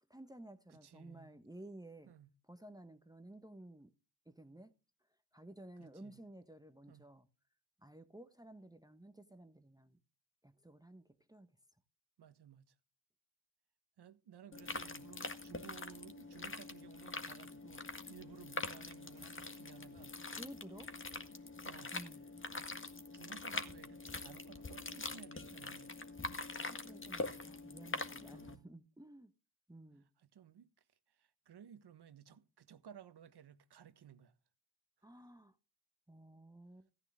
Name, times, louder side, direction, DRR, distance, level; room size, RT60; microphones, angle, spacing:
voice 1, 0.1-2.1 2.5-3.9 4.3-4.7 5.3-7.3 7.8-10.0 10.4-11.5 20.4-20.9 21.9-22.3 26.6-29.3 29.7-30.1 35.0-35.5 36.1-36.9, right 1 dB, 10° right, 1.2 m, -54 dB
voice 2, 0.7-1.3 2.1-2.3 5.8-6.1 6.9-7.0 12.2-12.7 14.0-20.4 21.6-21.9 22.5-22.7 23.1-25.9 28.3-28.7 30.2-30.7 31.1-34.3, right 9 dB, 55° right, 1.4 m, -57 dB
sound 1, 14.5-28.5, left 3 dB, 25° left, 1.8 m, -44 dB
15.0 x 9.8 x 3.7 m
supercardioid pair, 55°, 48 cm